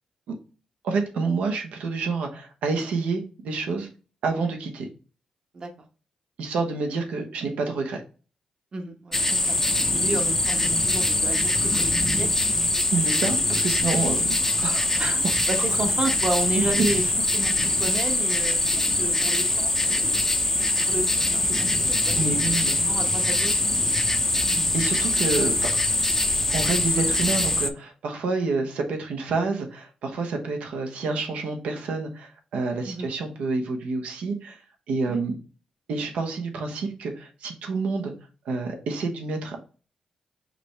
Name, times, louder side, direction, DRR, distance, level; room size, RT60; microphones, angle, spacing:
voice 1, 0.8-3.9 4.2-4.9 6.4-8.0 12.9-14.9 15.2-15.4 16.8-17.1 22.2-22.7 24.7-25.7 26.3-34.6 34.9-35.4 35.9-38.1 38.4-39.6, right 4 dB, 85° right, 3 dB, 0.9 m, -28 dB
voice 2, 8.7-9.6 9.9-10.6 10.9-11.9 12.2-12.3 15.0-17.0 17.3-20.2 20.8-22.5 22.9-23.8 32.8-33.1 35.1-35.2, right 2 dB, 45° right, 5 dB, 1.0 m, -32 dB
sound 1, 9.1-27.7, left 2 dB, 15° left, 0.5 m, -23 dB
5.0 x 3.4 x 3.1 m, 0.36 s
cardioid pair, 85°, 2 cm